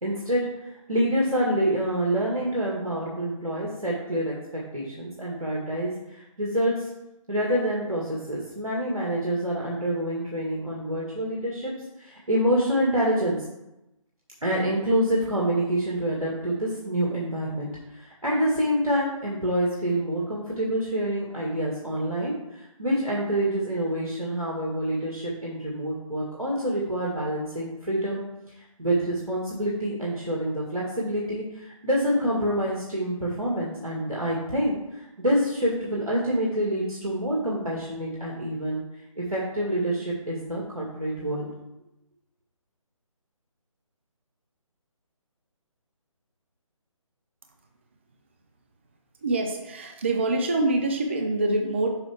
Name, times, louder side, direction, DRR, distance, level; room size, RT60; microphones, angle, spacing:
voice 1, 0.0-6.9 7.3-13.5 14.4-28.2 28.6-38.8 39.2-41.5, right 1 dB, 85° right, -4 dB, 1.9 m, -27 dB
voice 2, 49.2-51.9, right 2 dB, 20° right, 4 dB, 0.4 m, -25 dB
6.9 x 5.5 x 3.5 m, 0.92 s
figure-of-eight pair, 150°, 18 cm